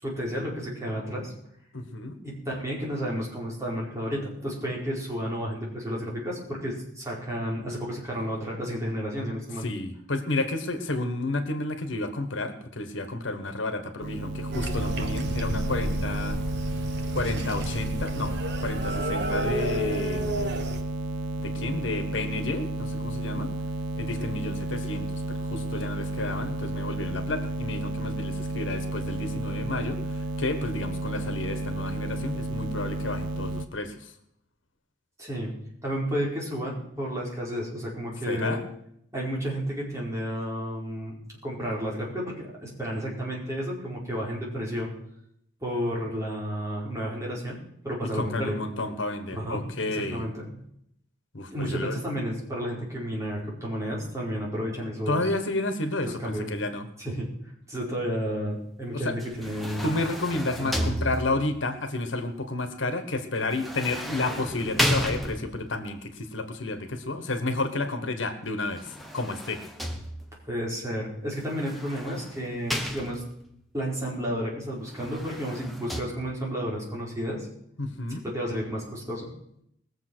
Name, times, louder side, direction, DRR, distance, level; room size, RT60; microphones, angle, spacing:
voice 1, 0.0-1.3 2.2-9.7 35.2-35.5 35.8-38.6 39.1-41.2 41.4-44.9 45.6-47.6 47.8-48.6 49.3-50.5 51.5-55.3 56.0-56.5 57.0-57.3 57.7-59.9 60.6-60.9 70.5-73.2 73.7-77.5 78.2-79.3, equal, 15° right, -4 dB, 4.8 m, -32 dB
voice 2, 1.7-2.2 9.6-16.4 17.1-18.3 18.6-20.5 21.4-23.5 23.9-34.1 38.3-38.6 48.1-50.3 51.3-52.0 55.1-56.9 58.9-59.2 59.8-69.6 77.8-78.2, left 2 dB, 80° left, 8 dB, 1.5 m, -31 dB
sound 1, 14.0-33.7, right 1 dB, 85° right, 0.7 m, -32 dB
sound 2, 14.5-20.8, right 1 dB, 60° right, 1.3 m, -31 dB
sound 3, 59.2-61.6 63.5-65.8 68.6-70.5 71.5-73.5 74.8-76.0, equal, ahead, 1.2 m, -33 dB
20.5 x 7.3 x 6.3 m, 0.73 s
head